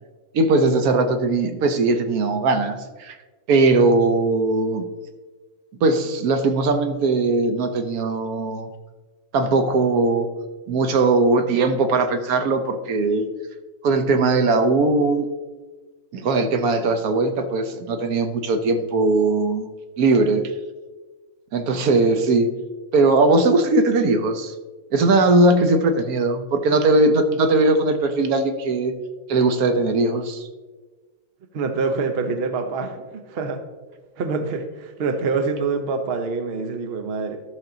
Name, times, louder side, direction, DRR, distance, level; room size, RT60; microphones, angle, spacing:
voice 1, 0.3-3.2 3.5-4.8 5.8-8.7 9.3-10.3 10.7-13.3 13.8-15.3 16.1-19.7 20.0-20.4 21.5-22.5 22.9-24.5 24.9-28.9 29.3-30.5, right 3 dB, 75° right, 8 dB, 1.3 m, -19 dB
voice 2, 31.5-33.7 34.2-37.4, right 4 dB, 50° right, 8 dB, 0.9 m, -26 dB
13.5 x 6.2 x 3.8 m, 1.3 s
omnidirectional pair, 1.6 m